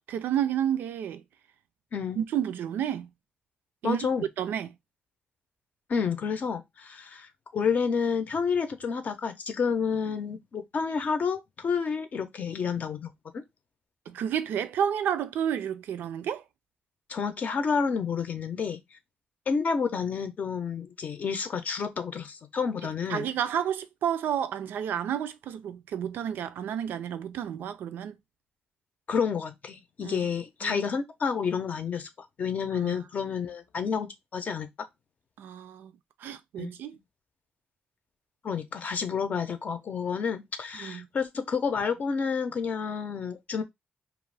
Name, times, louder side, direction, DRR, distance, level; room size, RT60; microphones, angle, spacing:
voice 1, 0.1-1.2 2.2-3.1 3.8-4.1 4.4-4.7 14.1-16.4 23.1-28.2 30.0-30.2 30.6-30.9 32.8-33.0 35.4-35.9 36.2-37.0 40.7-41.1, right 9 dB, 85° right, 0.3 m, -30 dB
voice 2, 1.9-2.2 3.8-4.3 5.9-13.4 17.1-18.8 19.5-23.3 29.1-32.1 32.4-34.9 36.6-36.7 38.4-43.6, left 6 dB, 50° left, 0.6 m, -30 dB
2.4 x 2.3 x 3.3 m
cardioid pair, 100°, 3 cm